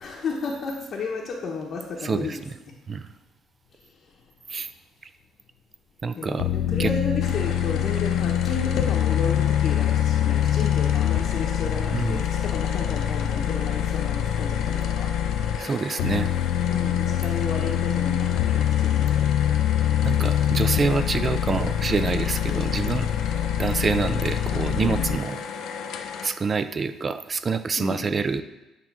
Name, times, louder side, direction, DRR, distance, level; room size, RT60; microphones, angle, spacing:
voice 1, 0.0-2.7 6.1-15.1 16.6-19.1 22.5-22.7 24.8-25.0 27.8-28.1, left 4 dB, 40° left, -3 dB, 0.9 m, -33 dB
voice 2, 2.0-2.6 2.9-3.1 4.5-4.7 6.0-6.9 11.9-12.2 15.6-16.3 20.0-23.1 23.3-25.4 26.2-28.4, right 4 dB, 25° right, 11 dB, 0.4 m, -27 dB
sound 1, 6.4-15.6 16.0-25.2, left 10 dB, 85° left, 0.4 m, -24 dB
sound 2, 7.2-26.3, left 6 dB, 70° left, 0.8 m, -35 dB
9.1 x 3.6 x 5.9 m, 1.0 s
cardioid pair, 150°, 0 cm